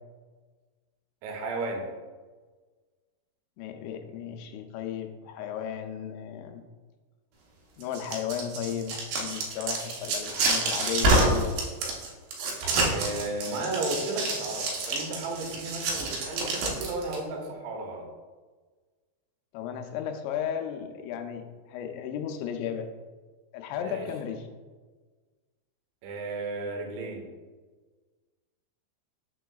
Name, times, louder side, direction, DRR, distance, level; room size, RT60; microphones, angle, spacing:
voice 1, 1.2-1.8 12.9-18.1 23.8-24.1 26.0-27.2, right 2 dB, 90° right, 2 dB, 3.3 m, -34 dB
voice 2, 3.6-6.6 7.8-11.5 19.5-22.9 23.5-24.4, left 8 dB, 85° left, 5 dB, 2.8 m, -34 dB
sound 1, 7.8-17.2, right 2 dB, 75° right, 2.9 m, -28 dB
6.8 x 6.4 x 2.3 m, 1.4 s
omnidirectional pair, 5.2 m